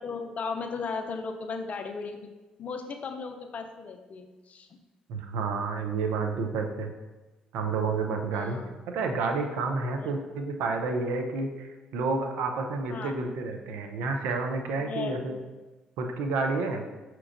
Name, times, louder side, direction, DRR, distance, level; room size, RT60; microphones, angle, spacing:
voice 1, 0.0-2.3 2.6-4.7 8.3-8.7 10.0-10.1 12.9-13.1 14.7-15.4, left 4 dB, 50° left, 5 dB, 0.5 m, -36 dB
voice 2, 5.1-6.9 7.5-8.6 8.9-15.4 16.0-16.8, right 4 dB, 80° right, 4 dB, 0.4 m, -30 dB
5.9 x 2.9 x 2.5 m, 1.2 s
hypercardioid pair, 55°, 3 cm